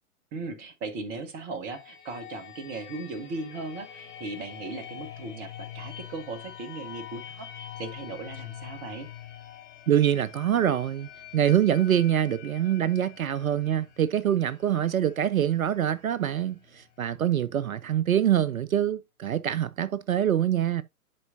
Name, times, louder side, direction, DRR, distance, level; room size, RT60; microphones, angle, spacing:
voice 1, 0.3-9.1, right 3 dB, 20° right, 0.9 m, -37 dB
sound 1, 1.7-17.3, left 10 dB, 50° left, 2.1 m, -45 dB
voice 2, 9.9-20.8, right 10 dB, 65° right, 0.6 m, -25 dB
11.0 x 4.6 x 2.6 m
figure-of-eight pair, 115°, 45 cm